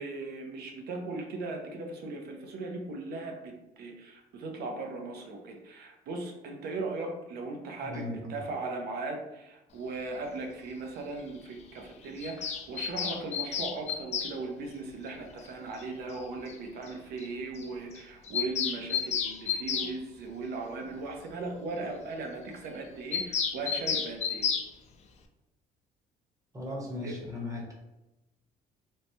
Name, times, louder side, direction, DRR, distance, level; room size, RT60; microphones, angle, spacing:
voice 1, 0.0-24.5 27.0-27.2, right 3 dB, 70° right, 2 dB, 0.6 m, -38 dB
voice 2, 7.8-8.3 19.7-19.8 26.5-27.7, left 2 dB, 20° right, -2 dB, 0.9 m, -37 dB
Bird vocalization bird call bird song, 12.2-14.4 15.8-15.9 16.1-16.2 16.5-16.6 16.9-17.0 17.2-17.3 17.6-17.7 18.0-19.9 23.1-24.7, left 7 dB, 40° left, 0.4 m, -31 dB
3.1 x 2.1 x 2.7 m, 0.95 s
cardioid pair, 110°, 17 cm